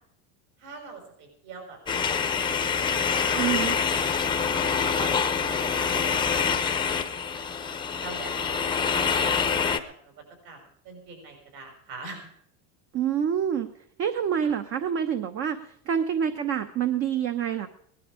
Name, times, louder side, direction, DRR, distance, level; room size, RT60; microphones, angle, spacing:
voice 1, 0.6-2.0 2.3-3.7 4.1-4.4 4.9-7.6 8.0-10.1 10.4-12.3, right 3 dB, 65° right, 3 dB, 6.4 m, -44 dB
sound 1, 1.9-9.8, left 6 dB, 15° left, 0.8 m, -26 dB
voice 2, 3.3-3.8 12.9-13.7 14.0-17.7, right 8 dB, 35° right, 8 dB, 1.0 m, -27 dB
18.5 x 11.5 x 5.0 m, 0.66 s
cardioid pair, 155°, 36 cm